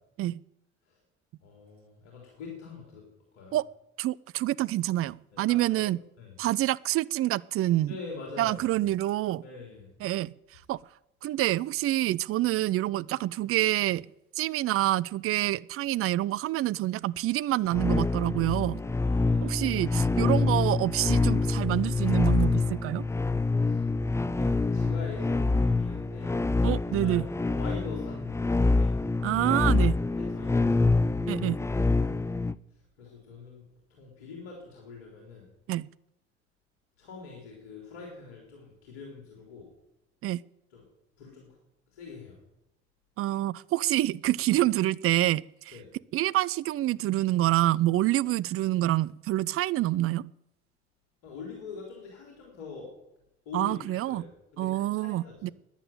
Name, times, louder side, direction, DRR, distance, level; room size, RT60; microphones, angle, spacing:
voice 1, 1.4-3.0 3.3-3.6 5.5-5.9 6.2-6.3 7.9-8.6 9.4-9.9 19.0-19.7 23.6-23.8 24.3-26.3 27.0-27.2 27.5-28.9 30.2-31.1 33.0-33.6 33.9-35.5 37.0-39.7 40.7-40.8 41.2-41.5 41.9-42.4 45.7-45.8 51.2-52.9 53.5-54.2 54.5-55.5, left 4 dB, 70° left, -1 dB, 3.8 m, -44 dB
voice 2, 4.0-6.0 6.4-8.0 8.4-9.4 10.0-10.3 10.7-10.8 11.2-14.0 14.4-18.8 19.4-23.1 26.6-27.3 29.2-29.9 31.3-31.6 35.7-35.9 40.2-40.4 43.2-45.8 46.1-50.3 53.5-54.2 54.6-55.5, right 15 dB, 40° right, 19 dB, 0.5 m, -27 dB
sound 1, 17.7-32.5, left 3 dB, 10° left, 0.5 m, -26 dB
14.5 x 10.0 x 9.1 m, 0.86 s
figure-of-eight pair, 50°, 34 cm